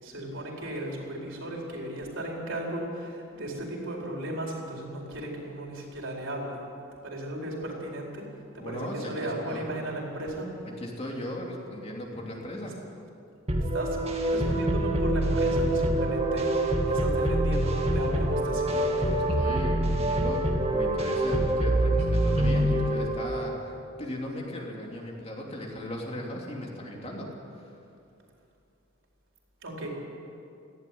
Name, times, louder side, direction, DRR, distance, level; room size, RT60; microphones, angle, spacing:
voice 1, 0.0-6.6 7.0-8.3 8.5-10.5 12.5-12.6 13.7-14.0 14.3-19.2 29.6-29.9, right 1 dB, 65° right, -1 dB, 4.6 m, -36 dB
voice 2, 8.6-9.7 10.8-12.8 18.4-27.7, left 1 dB, 30° left, -1 dB, 3.1 m, -37 dB
sound 1, 13.5-23.6, right 1 dB, 30° right, 2.1 m, -25 dB
18.5 x 15.5 x 9.5 m, 2.6 s
head